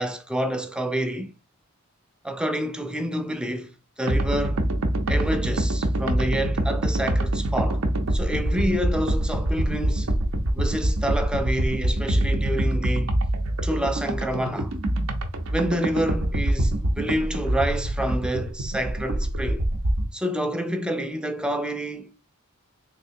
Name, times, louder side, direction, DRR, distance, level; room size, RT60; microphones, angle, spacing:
voice 1, 0.0-1.3 2.2-3.7 4.0-4.6 5.1-7.8 8.1-10.1 10.5-13.2 13.6-14.7 15.5-19.7 20.1-22.2, equal, 5° right, 0.3 m, -28 dB
sound 1, 4.1-20.1, right 1 dB, 70° right, 0.6 m, -25 dB
3.4 x 3.3 x 2.7 m
head